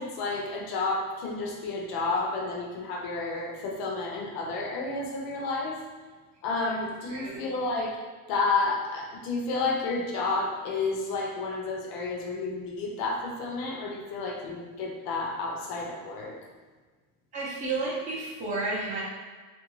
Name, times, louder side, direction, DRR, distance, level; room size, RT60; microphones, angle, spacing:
voice 1, 0.0-5.8 6.4-8.0 8.3-16.4, left 3 dB, 50° left, -1 dB, 0.7 m, -31 dB
voice 2, 17.3-19.0, right 3 dB, 15° right, -6 dB, 0.6 m, -31 dB
2.6 x 2.2 x 3.0 m, 1.4 s
supercardioid pair, 135°, 47 cm